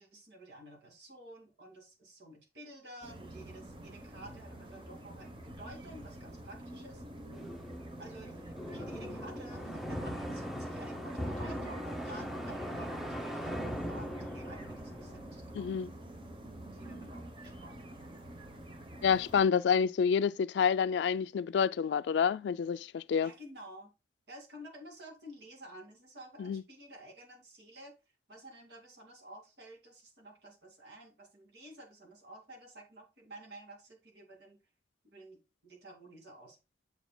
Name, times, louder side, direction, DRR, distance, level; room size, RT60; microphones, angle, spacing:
voice 1, 0.0-7.0 8.0-15.7 16.7-17.9 23.2-23.9 24.3-27.9 28.3-34.6 35.0-36.6, right 1 dB, 75° right, 2.3 m, -52 dB
sound 1, 3.0-19.4, right 1 dB, 30° right, 0.9 m, -48 dB
sound 2, 7.3-16.1, equal, ahead, 0.7 m, -40 dB
voice 2, 15.5-15.9 19.0-23.3 26.4-26.6, left 6 dB, 80° left, 0.3 m, -28 dB
7.2 x 6.9 x 2.2 m
head